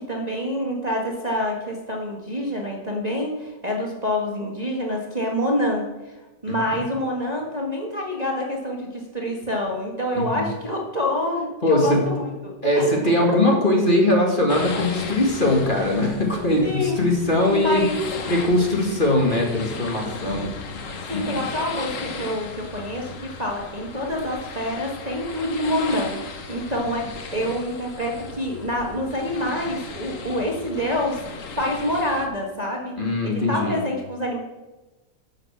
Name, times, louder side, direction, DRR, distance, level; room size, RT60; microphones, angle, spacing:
voice 1, 0.1-6.1 6.4-13.1 13.5-13.6 14.5-14.6 15.7-16.1 16.6-17.0 17.5-18.0 21.1-27.0 27.3-33.0 33.2-34.4, left 1 dB, 25° right, -2 dB, 1.6 m, -27 dB
voice 2, 10.1-10.5 11.6-12.1 12.6-17.8 18.3-20.5 21.1-21.3 33.0-33.8, left 1 dB, 30° left, 0 dB, 2.1 m, -21 dB
sound 1, 14.5-32.3, left 4 dB, 50° left, 1.4 m, -36 dB
11.5 x 6.6 x 7.5 m, 1.1 s
omnidirectional pair, 1.9 m